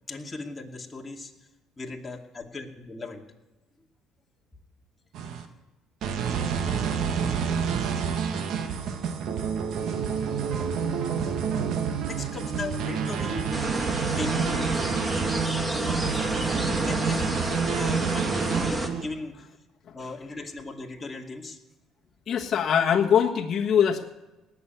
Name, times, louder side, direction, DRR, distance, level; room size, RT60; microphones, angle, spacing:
voice 1, 0.1-1.3 1.8-3.2 12.0-13.6 14.2-14.4 16.7-17.4 17.7-19.5 19.9-21.6, left 3 dB, 20° left, 1 dB, 2.3 m, -37 dB
sound 1, 5.1-5.4 6.0-19.0, right 6 dB, 65° right, 1.7 m, -28 dB
sound 2, 13.5-18.9, right 1 dB, 10° right, 1.9 m, -29 dB
voice 2, 22.3-24.0, left 8 dB, 45° left, 0 dB, 1.4 m, -22 dB
18.0 x 7.2 x 9.4 m, 1.1 s
supercardioid pair, 90°, 0 cm